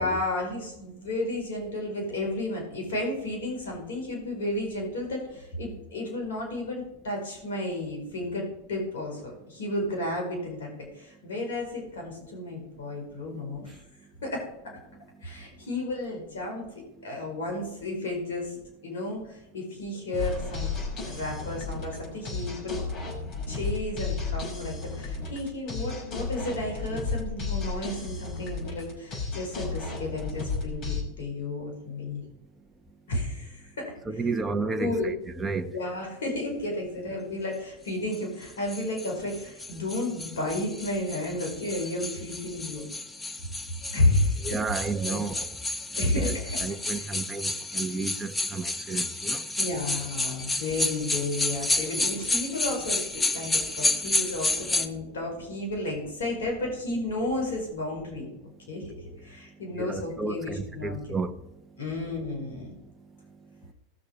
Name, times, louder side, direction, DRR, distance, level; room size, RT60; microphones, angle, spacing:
voice 1, 0.0-13.8 14.2-14.4 15.2-16.7 17.0-18.5 18.8-20.7 21.0-22.9 23.5-32.2 33.1-33.9 34.8-35.1 35.7-42.9 43.9-45.3 45.9-47.2 49.6-58.3 58.7-58.9 59.2-61.0 61.8-62.7, left 2 dB, 80° left, 5.0 m, -32 dB
sound 1, 20.1-31.0, left 4 dB, 45° left, 5.4 m, -33 dB
voice 2, 34.1-35.8 41.9-42.0 42.8-42.9 44.4-45.6 46.0-49.5 53.8-54.2 54.6-54.9 59.7-61.4 63.6-63.7, right 4 dB, 15° right, 1.0 m, -33 dB
sound 2, 38.1-54.9, left 2 dB, 10° left, 1.1 m, -31 dB
18.5 x 6.6 x 5.4 m
hypercardioid pair, 100°, 0 cm